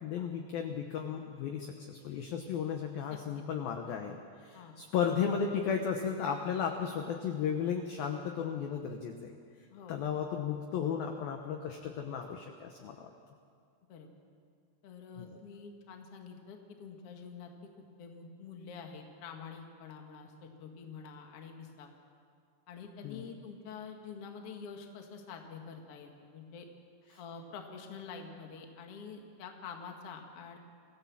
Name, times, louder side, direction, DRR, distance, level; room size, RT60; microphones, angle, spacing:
voice 1, 0.0-4.2 4.4-9.4 9.9-13.1 23.0-23.3 27.1-27.2, left 7 dB, 75° left, 4 dB, 2.2 m, -34 dB
voice 2, 3.1-3.4 4.5-4.8 9.7-10.0 13.9-14.1 14.8-21.9 22.7-26.6 27.2-30.6, left 5 dB, 55° left, 3 dB, 1.7 m, -47 dB
26.0 x 16.5 x 7.3 m, 2.2 s
omnidirectional pair, 5.6 m